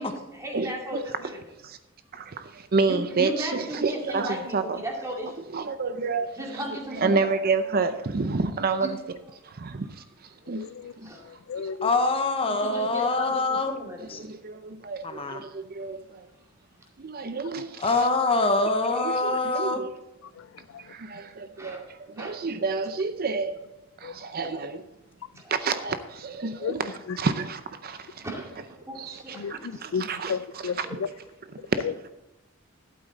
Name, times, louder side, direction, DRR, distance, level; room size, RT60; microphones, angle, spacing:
voice 1, 0.0-1.4 2.8-5.5 6.4-7.2 8.8-8.9 11.0-11.2 12.5-14.3 21.6-21.8 22.2-22.3 25.3-25.5 28.2-29.8 30.9-31.0, equal, 15° right, 2.3 m, -36 dB
voice 2, 0.5-1.0 1.6-1.8 2.1-4.8 5.5-6.6 6.9-9.2 9.4-10.7 11.0-11.1 11.6-11.7 14.0-16.3 17.0-18.1 19.0-19.9 20.8-23.6 24.0-24.8 25.5-28.3 28.9-30.3 30.8-31.0 31.5-31.8, right 4 dB, 50° right, 0.6 m, -29 dB
voice 3, 10.5-10.9 11.2-11.9 17.6-17.7 20.3-20.9 24.0-24.2 26.6-26.8 27.1-27.2 29.3-31.1 31.8-32.1, left 6 dB, 70° left, 0.4 m, -33 dB
voice 4, 11.8-13.7 14.1-14.2 15.0-15.4 17.8-19.8, left 3 dB, 30° left, 0.9 m, -24 dB
12.0 x 8.5 x 4.1 m
head